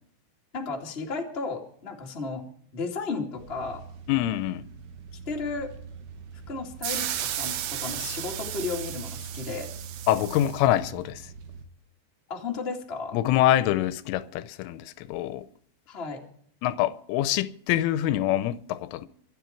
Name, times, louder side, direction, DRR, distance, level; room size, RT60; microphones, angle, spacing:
voice 1, 0.5-2.4 2.7-3.8 5.2-5.7 6.5-9.7 12.3-13.2 15.9-16.2, left 4 dB, 35° left, 0.9 m, -34 dB
sound 1, 3.4-11.7, right 5 dB, 65° right, 3.6 m, -43 dB
voice 2, 4.1-4.7 10.1-11.2 13.1-15.4 16.6-19.1, left 13 dB, 80° left, 3.1 m, -25 dB
sound 2, 6.8-10.6, right 11 dB, 85° right, 2.0 m, -34 dB
25.0 x 9.9 x 4.5 m
omnidirectional pair, 5.8 m